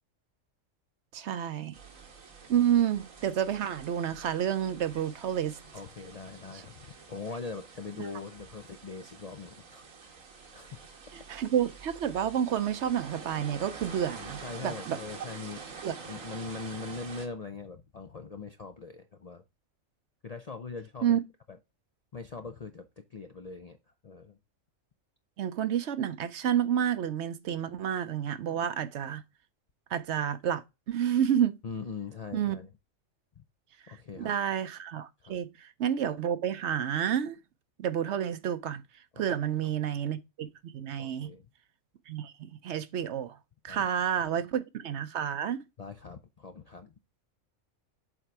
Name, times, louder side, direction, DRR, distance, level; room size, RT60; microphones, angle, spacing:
voice 1, 1.1-1.8 2.5-5.6 6.5-6.6 11.1-15.0 15.8-15.9 21.0-21.2 25.4-29.2 29.9-30.6 30.9-31.6 32.3-32.6 33.9-37.4 37.8-38.8 39.2-41.3 42.1-43.4 43.6-45.6, right 9 dB, 65° right, 0.9 m, -30 dB
sound 1, 1.7-17.3, right 5 dB, 80° right, 1.7 m, -47 dB
voice 2, 5.7-10.1 10.5-10.9 14.1-15.6 16.1-19.4 20.2-21.2 21.5-21.6 22.1-23.8 24.0-24.4 31.6-32.7 33.4-33.5 33.9-34.3 35.2-35.4 39.1-39.3 41.0-41.5 43.7-43.9 45.8-46.9, left 4 dB, 50° left, 0.4 m, -42 dB
7.3 x 3.8 x 4.6 m
omnidirectional pair, 1.4 m